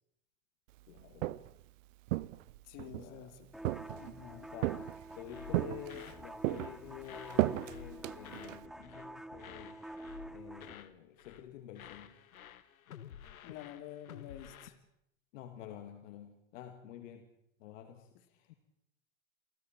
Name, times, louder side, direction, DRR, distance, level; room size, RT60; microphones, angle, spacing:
voice 1, 0.9-1.4 3.0-3.3 4.5-9.8 10.3-12.2 15.3-17.3 17.6-18.6, left 11 dB, 65° left, 6 dB, 2.4 m, -49 dB
Walk footsteps, 1.0-1.6 2.1-3.1 3.6-4.2 4.6-5.2 5.5-6.1 6.4-8.7, right 17 dB, 65° right, 0.8 m, -34 dB
voice 2, 2.6-3.5 4.0-4.5 13.4-14.8, left 10 dB, 50° left, 8 dB, 3.2 m, -49 dB
sound 1, 3.5-10.7, right 1 dB, ahead, 0.8 m, -48 dB
sound 2, 5.3-6.2 6.5-6.8 7.0-8.6 8.8-9.1 9.4-10.9 11.2-11.5 11.7-14.7, left 9 dB, 90° left, 1.5 m, -52 dB
29.0 x 24.0 x 4.5 m, 0.77 s
hypercardioid pair, 115°, 41 cm